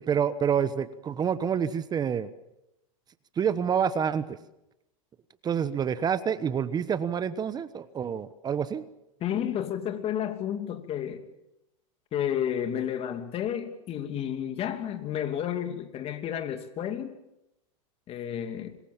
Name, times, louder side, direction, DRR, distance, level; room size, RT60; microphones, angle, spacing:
voice 1, 0.0-2.3 3.4-4.2 5.4-8.8, right 7 dB, 20° right, 1.1 m, -27 dB
voice 2, 9.2-11.2 12.1-17.1 18.1-18.8, left 9 dB, 35° left, 2.7 m, -31 dB
26.0 x 21.5 x 7.3 m
hypercardioid pair, 120°, 18 cm